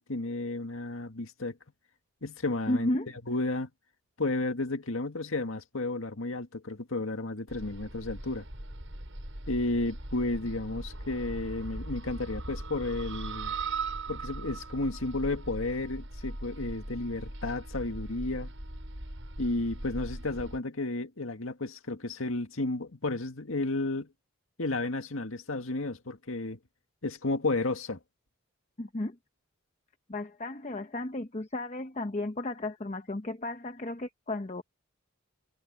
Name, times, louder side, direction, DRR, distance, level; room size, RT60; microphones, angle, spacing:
voice 1, 0.0-1.6 2.2-2.9 3.3-3.7 4.2-8.4 9.5-13.5 14.1-18.5 19.4-24.1 24.6-26.6 27.0-28.0, left 2 dB, 80° left, 1.9 m, -32 dB
voice 2, 2.7-3.1 28.8-29.2 30.1-34.6, left 1 dB, 35° left, 0.8 m, -33 dB
sound 1, 7.5-20.6, right 2 dB, 70° right, 6.6 m, -39 dB
head